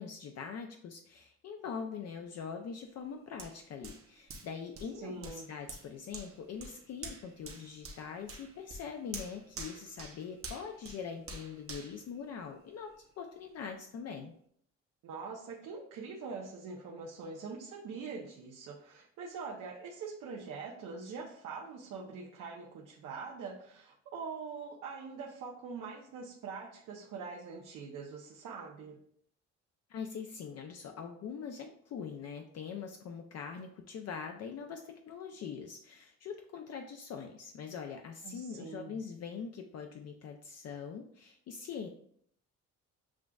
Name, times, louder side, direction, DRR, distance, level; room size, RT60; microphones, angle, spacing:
voice 1, 0.0-14.3 29.9-41.9, left 6 dB, 55° left, 3 dB, 0.5 m, -43 dB
Hands, 3.4-12.9 13.4-13.5, right 3 dB, 50° right, 0.9 m, -48 dB
voice 2, 5.0-5.5 15.0-29.0 38.2-39.0, right 5 dB, 80° right, -3 dB, 0.8 m, -43 dB
7.2 x 2.5 x 2.3 m, 0.65 s
cardioid pair, 90°, 30 cm